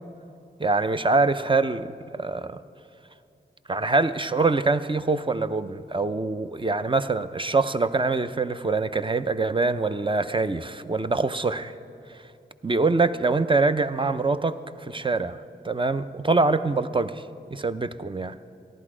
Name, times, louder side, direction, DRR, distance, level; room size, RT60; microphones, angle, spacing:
voice 1, 0.6-1.9 2.1-2.6 3.7-11.7 12.6-17.2 17.5-18.3, right 3 dB, 30° right, 11 dB, 0.6 m, -24 dB
14.5 x 11.0 x 5.0 m, 2.6 s
cardioid pair, 40°, 18 cm